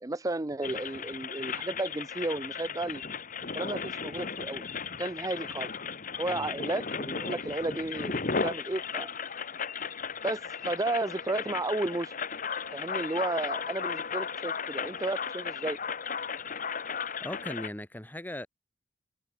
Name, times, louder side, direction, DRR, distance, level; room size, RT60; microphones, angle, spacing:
voice 1, 0.0-3.0 3.5-4.6 5.0-5.7 6.2-9.1 10.2-12.2 12.7-15.8, right 2 dB, 20° right, 0.5 m, -33 dB
sound 1, 0.6-17.7, left 5 dB, 45° left, 1.3 m, -35 dB
voice 2, 17.2-18.5, left 1 dB, 10° left, 1.1 m, -38 dB
head